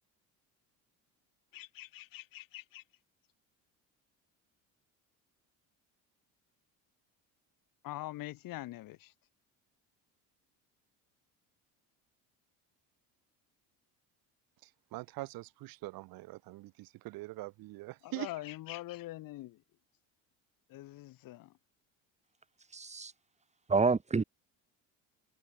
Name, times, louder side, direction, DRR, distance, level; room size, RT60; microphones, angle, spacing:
voice 1, 1.5-2.8 7.8-9.1 18.0-19.6 20.7-21.6, left 16 dB, 65° left, 7.7 m, -44 dB
voice 2, 14.6-18.3, right 20 dB, 75° right, 7.1 m, -43 dB
voice 3, 22.7-23.1 23.7-24.2, right 4 dB, 20° right, 3.4 m, -28 dB
cardioid pair, 110°, 35 cm